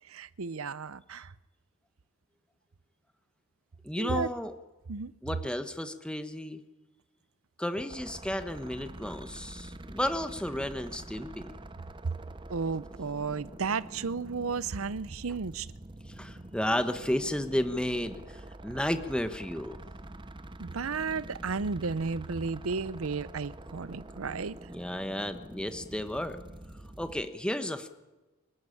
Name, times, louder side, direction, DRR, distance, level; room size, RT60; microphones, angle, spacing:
voice 1, 0.1-1.3 4.0-4.3 4.9-5.1 12.5-15.7 20.6-24.6, right 4 dB, 80° right, 0.7 m, -33 dB
voice 2, 3.8-4.5 5.2-6.6 7.6-11.5 16.2-19.8 24.7-26.4 27.0-27.9, left 1 dB, 5° left, 1.1 m, -33 dB
sound 1, 7.9-27.3, right 1 dB, 25° right, 0.8 m, -46 dB
24.5 x 14.5 x 10.0 m
head